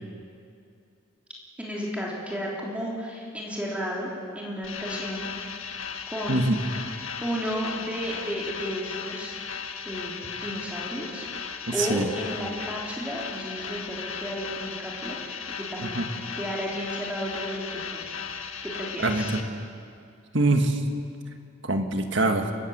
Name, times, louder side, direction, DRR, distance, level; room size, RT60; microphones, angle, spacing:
voice 1, 1.6-5.3 6.1-6.5 6.8-6.9 7.2-9.3 9.8-16.0 16.3-18.1 18.6-19.3, equal, 5° right, -4 dB, 3.4 m, -33 dB
sound 1, 4.6-19.4, left 6 dB, 90° left, 1.5 m, -36 dB
voice 2, 11.8-12.1 15.8-16.1 19.0-19.4 20.3-20.8 21.6-22.5, right 2 dB, 60° right, 5 dB, 1.8 m, -24 dB
29.0 x 13.5 x 8.0 m, 2.5 s
head